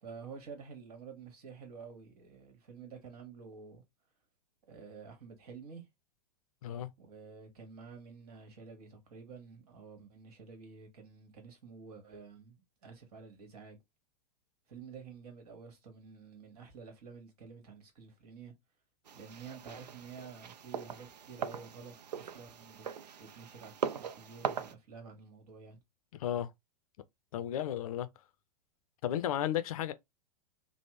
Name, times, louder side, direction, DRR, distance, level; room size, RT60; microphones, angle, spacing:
voice 1, 0.0-3.8 4.7-5.9 7.0-13.8 14.7-18.5 19.1-22.9 23.2-23.7 24.0-25.8, right 5 dB, 65° right, 1.4 m, -50 dB
sound 1, 19.1-24.7, right 7 dB, 85° right, 0.4 m, -40 dB
voice 2, 26.2-26.5 27.3-28.1 29.0-29.9, left 11 dB, 60° left, 0.5 m, -33 dB
3.3 x 2.0 x 3.0 m
figure-of-eight pair, 100°, 20 cm